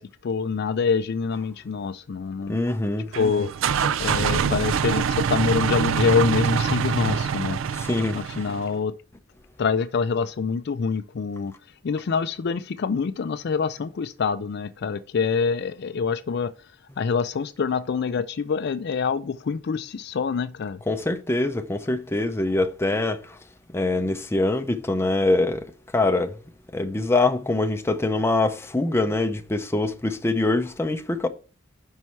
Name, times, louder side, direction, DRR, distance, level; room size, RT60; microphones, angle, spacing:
voice 1, 0.0-2.6 3.1-3.6 4.0-7.6 8.1-8.9 9.6-11.5 11.8-16.5 17.0-20.8, left 5 dB, 55° left, 0.4 m, -25 dB
voice 2, 2.5-3.1 7.8-8.2 20.9-23.2 23.7-25.7 25.9-26.3 26.7-31.3, left 2 dB, 15° left, 0.6 m, -24 dB
sound 1, 3.1-8.7, right 7 dB, 80° right, 0.4 m, -25 dB
5.5 x 4.6 x 5.6 m
head